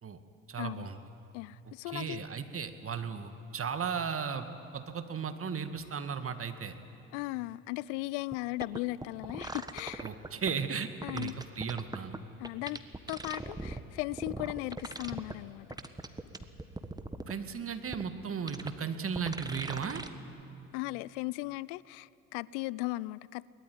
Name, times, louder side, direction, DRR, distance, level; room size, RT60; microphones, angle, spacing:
voice 1, 0.5-1.0 1.9-4.5 4.7-6.7 10.0-12.2 17.3-20.0, right 6 dB, 35° right, 2.0 m, -35 dB
voice 2, 1.3-2.2 7.1-10.1 11.0-11.3 12.4-12.8 13.1-15.7 20.7-23.5, left 20 dB, 65° left, 0.5 m, -37 dB
sound 1, 8.3-8.4 8.6-10.5 11.0-12.2 12.4-13.8 14.1-15.3 15.7-17.3 17.9-18.0 18.5-18.7 19.1-20.1 20.4-20.5, right 2 dB, 10° right, 1.5 m, -39 dB
22.5 x 20.0 x 9.7 m
figure-of-eight pair, 55°, 39 cm